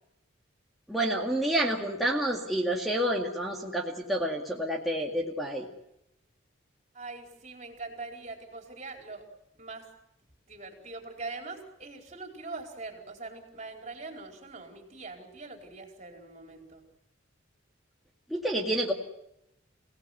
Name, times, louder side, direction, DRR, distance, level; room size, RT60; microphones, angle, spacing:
voice 1, 0.9-5.7 18.3-18.9, right 1 dB, ahead, -3 dB, 2.1 m, -29 dB
voice 2, 6.9-9.3 9.6-9.9 10.5-16.8, right 3 dB, 35° right, 2 dB, 4.6 m, -42 dB
29.0 x 18.0 x 8.1 m, 0.83 s
head